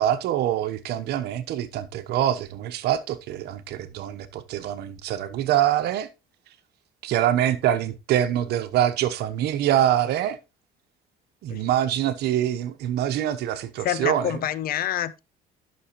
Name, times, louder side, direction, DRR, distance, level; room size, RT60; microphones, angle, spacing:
voice 1, 0.0-6.1 7.0-10.4 11.4-14.4, right 11 dB, 80° right, 1.1 m, -25 dB
voice 2, 13.8-15.2, left 10 dB, 60° left, 0.7 m, -27 dB
11.5 x 6.3 x 3.1 m
cardioid pair, 110°, 17 cm